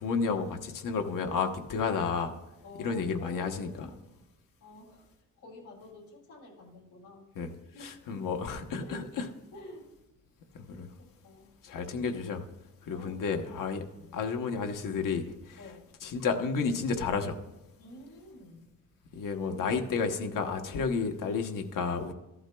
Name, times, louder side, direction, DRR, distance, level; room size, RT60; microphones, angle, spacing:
voice 1, 0.0-2.3 2.8-3.9 7.3-7.5 7.8-9.3 10.5-10.9 11.6-12.4 12.9-13.8 14.1-15.6 16.0-17.4 19.1-22.1, left 5 dB, 85° left, 5 dB, 1.0 m, -31 dB
voice 2, 2.6-4.1 4.6-5.0 5.4-7.2 7.7-8.3 8.8-9.1 9.5-9.9 11.0-11.6 12.9-13.3 13.9-14.1 15.6-15.9 17.8-18.7, left 1 dB, 65° left, -3 dB, 3.1 m, -50 dB
14.5 x 11.5 x 2.2 m, 0.97 s
wide cardioid pair, 145°, 32 cm